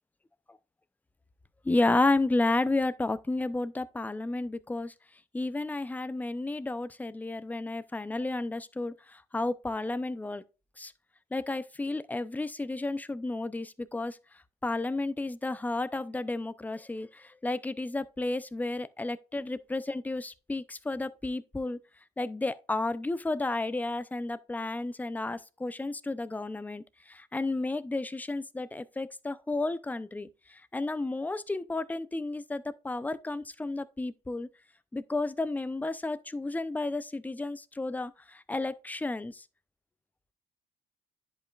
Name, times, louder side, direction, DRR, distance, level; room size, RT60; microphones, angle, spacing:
voice 1, 1.6-4.9 5.3-10.4 10.8-10.9 11.3-14.2 14.6-21.8 22.2-34.5 34.9-39.4, left 2 dB, 10° left, 0.6 m, -32 dB
10.5 x 5.2 x 2.4 m
cardioid pair, 110°, 17 cm